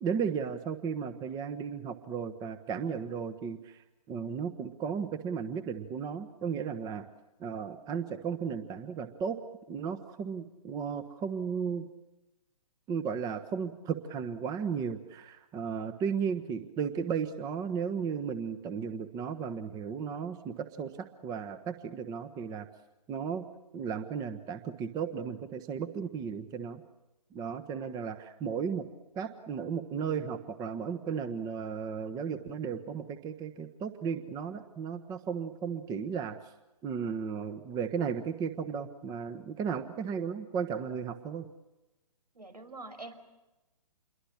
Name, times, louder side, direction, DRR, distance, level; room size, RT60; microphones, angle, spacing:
voice 1, 0.0-7.1 7.4-9.4 9.7-11.9 12.9-22.7 23.1-23.4 23.7-26.8 27.3-28.8 29.1-36.4 36.8-41.4, right 6 dB, 20° right, 11 dB, 1.3 m, -35 dB
voice 2, 42.3-43.1, right 2 dB, 85° right, 9 dB, 5.5 m, -44 dB
28.0 x 23.0 x 7.4 m, 1.0 s
figure-of-eight pair, 135°, 20 cm